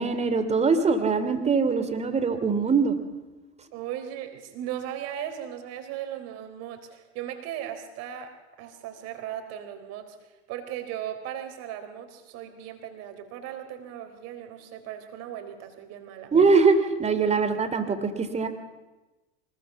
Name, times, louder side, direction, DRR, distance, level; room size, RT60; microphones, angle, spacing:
voice 1, 0.0-3.0 16.3-18.5, right 4 dB, 20° right, 9 dB, 2.9 m, -22 dB
voice 2, 3.7-10.2 10.5-16.3, right 10 dB, 45° right, 7 dB, 3.9 m, -37 dB
24.5 x 20.5 x 7.2 m, 1.2 s
figure-of-eight pair, 80°, 33 cm